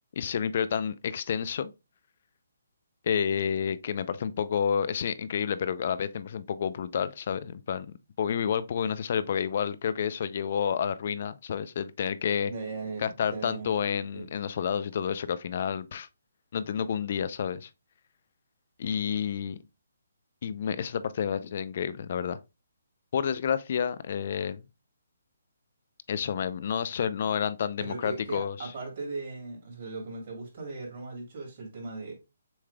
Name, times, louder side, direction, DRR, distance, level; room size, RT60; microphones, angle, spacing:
voice 1, 0.1-1.7 3.0-12.5 13.0-16.1 16.5-17.7 18.8-19.6 20.4-22.4 23.1-24.6 26.1-28.7, left 7 dB, 50° left, 0.5 m, -30 dB
voice 2, 12.5-13.7 14.1-14.3 27.8-32.1, right 3 dB, 45° right, 2.6 m, -38 dB
7.1 x 3.2 x 2.3 m
hypercardioid pair, 145°, 0 cm